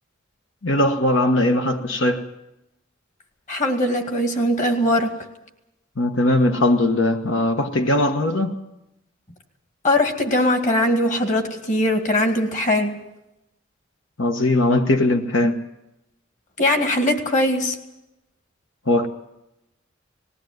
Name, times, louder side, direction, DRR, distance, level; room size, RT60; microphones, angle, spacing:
voice 1, 0.6-2.2 6.0-8.6 14.2-15.5 18.9-19.1, left 1 dB, 85° left, 5 dB, 1.3 m, -19 dB
voice 2, 3.5-5.1 9.8-13.0 16.6-17.8, left 1 dB, 40° left, 5 dB, 2.3 m, -20 dB
20.0 x 16.0 x 9.3 m, 0.92 s
head